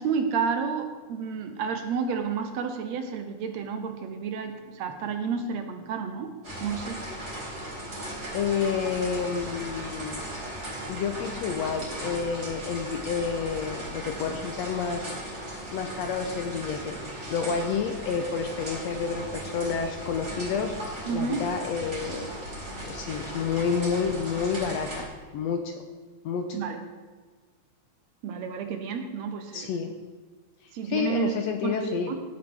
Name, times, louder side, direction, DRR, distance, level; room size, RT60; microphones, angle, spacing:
voice 1, 0.0-6.3 6.6-7.0 21.1-21.4 26.5-26.8 28.2-29.7 30.7-32.2, right 6 dB, 70° right, 7 dB, 1.9 m, -31 dB
sound 1, 6.4-25.0, right 1 dB, 25° right, 2.3 m, -37 dB
voice 2, 8.3-10.2 10.9-15.4 15.7-17.0 17.3-20.8 21.1-22.3 22.9-25.1 25.3-25.8 26.2-26.5 29.5-29.9 30.8-32.1, left 6 dB, 75° left, 5 dB, 1.6 m, -29 dB
16.0 x 8.2 x 3.4 m, 1.4 s
omnidirectional pair, 3.5 m